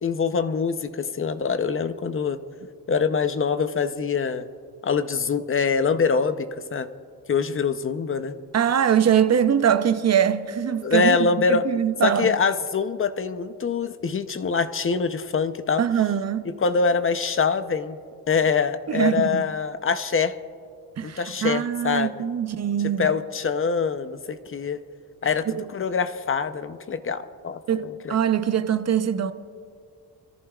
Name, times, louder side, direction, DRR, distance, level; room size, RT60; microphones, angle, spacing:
voice 1, 0.0-2.4 2.9-4.5 4.8-6.9 7.3-8.3 10.8-11.7 12.0-15.8 16.6-18.0 18.3-20.4 21.0-22.1 23.0-24.8 25.2-28.2, left 5 dB, 30° left, 0.7 m, -24 dB
voice 2, 8.5-12.4 15.8-16.5 18.9-19.4 21.0-23.1 25.5-25.7 27.7-29.3, right 9 dB, 40° right, 0.7 m, -23 dB
27.0 x 14.0 x 2.4 m
cardioid pair, 120°, 40 cm